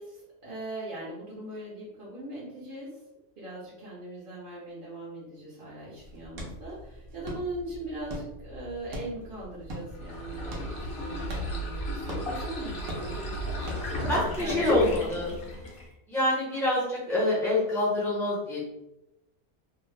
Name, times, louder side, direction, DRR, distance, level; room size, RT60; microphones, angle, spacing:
voice 1, 0.0-2.9 3.4-13.4 13.9-14.6 15.0-15.3, right 2 dB, 50° right, -7 dB, 0.8 m, -40 dB
sound 1, 6.0-15.0, equal, 75° right, 1.1 m, -42 dB
sound 2, 9.9-15.9, equal, 50° left, 0.7 m, -34 dB
voice 2, 14.1-15.3 16.1-18.6, left 1 dB, ahead, -8 dB, 0.5 m, -26 dB
2.7 x 2.0 x 3.2 m, 0.91 s
omnidirectional pair, 1.3 m